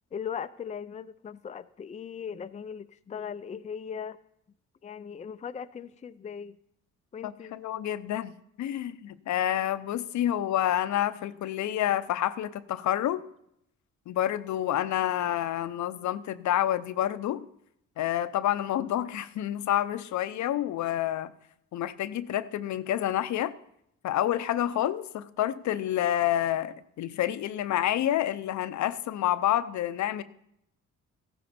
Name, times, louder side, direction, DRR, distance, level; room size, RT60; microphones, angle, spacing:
voice 1, 0.1-4.2 4.8-6.6 7.1-7.5, left 7 dB, 25° left, 10 dB, 0.5 m, -38 dB
voice 2, 7.2-13.2 14.1-17.5 18.0-21.3 21.7-23.5 24.0-30.2, left 12 dB, 70° left, 13 dB, 0.7 m, -28 dB
14.5 x 12.0 x 4.3 m, 0.75 s
cardioid pair, 90°, 30 cm